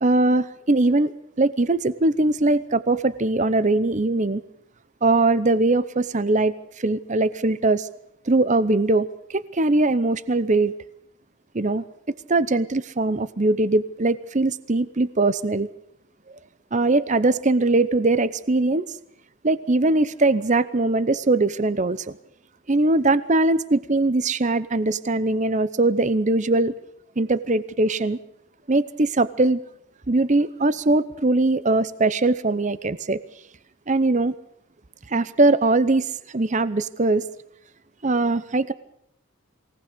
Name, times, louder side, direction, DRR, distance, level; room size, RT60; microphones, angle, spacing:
voice 1, 0.0-4.4 5.0-7.9 8.3-10.7 11.5-11.8 12.3-15.7 16.7-18.9 19.4-22.2 22.7-26.7 27.2-28.2 28.7-29.6 30.1-33.2 33.9-34.3 35.1-37.2 38.0-38.7, right 2 dB, 35° right, 15 dB, 0.7 m, -21 dB
23.5 x 18.5 x 6.8 m, 0.74 s
head